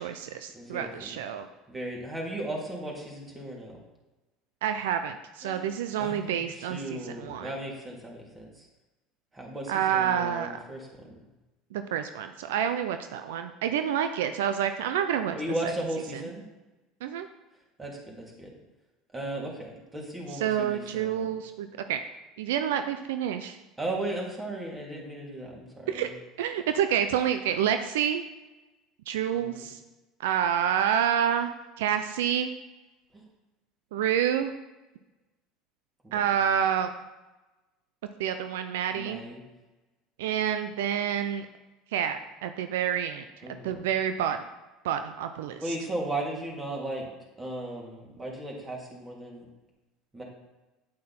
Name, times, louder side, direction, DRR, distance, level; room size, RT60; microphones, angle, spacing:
voice 1, 0.0-1.5 4.6-7.5 9.7-10.6 11.7-15.4 15.6-15.7 17.0-17.3 20.3-22.0 22.4-23.6 25.9-26.1 26.4-28.2 29.1-29.8 30.2-32.5 33.9-34.5 36.1-36.9 38.2-39.2 40.2-41.5 41.9-43.3 43.6-44.4 44.8-45.8, right 9 dB, 80° right, 9 dB, 0.5 m, -28 dB
voice 2, 0.5-1.2 1.7-3.8 5.4-5.6 6.0-8.7 9.3-10.9 15.3-16.4 17.8-18.5 19.1-21.3 23.8-26.1 29.3-29.7 33.1-33.2 36.0-36.2 38.9-39.4 43.4-43.8 45.6-47.1 47.4-49.5 50.1-50.2, right 1 dB, 20° right, -2 dB, 3.0 m, -36 dB
8.7 x 8.3 x 4.3 m, 1.1 s
hypercardioid pair, 85°, 0 cm